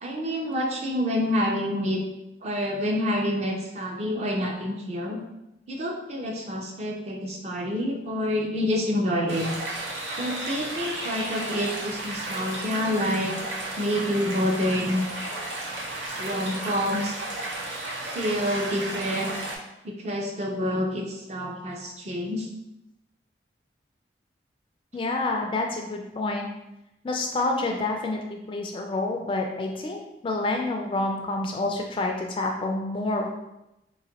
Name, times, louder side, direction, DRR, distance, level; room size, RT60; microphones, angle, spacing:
voice 1, 0.0-2.0 2.4-5.2 5.7-9.5 10.2-13.3 13.8-15.0 16.2-17.1 18.1-19.4 19.8-22.5, equal, 35° right, 1 dB, 0.5 m, -27 dB
sound 1, 9.3-19.6, right 2 dB, 80° right, 0.7 m, -33 dB
voice 2, 24.9-26.5 27.0-33.3, left 2 dB, 30° left, 2 dB, 0.3 m, -28 dB
3.9 x 2.5 x 2.8 m, 0.92 s
head